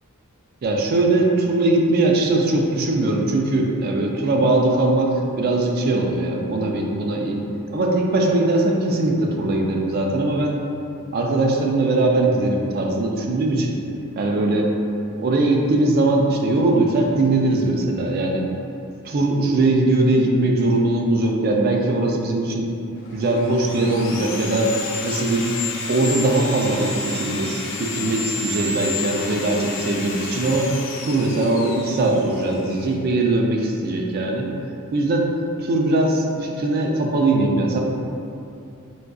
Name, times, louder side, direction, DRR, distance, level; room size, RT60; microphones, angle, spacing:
voice 1, 0.6-7.4 7.7-10.6 11.1-13.8 14.2-14.7 15.2-18.5 19.0-22.7 23.1-24.7 25.0-25.5 25.9-30.7 31.0-34.5 34.9-35.3 35.6-37.8, right 2 dB, 45° right, 0 dB, 0.3 m, -20 dB
Sawing, 23.1-32.9, left 3 dB, 55° left, 0.4 m, -31 dB
3.8 x 2.3 x 2.3 m, 2.6 s
head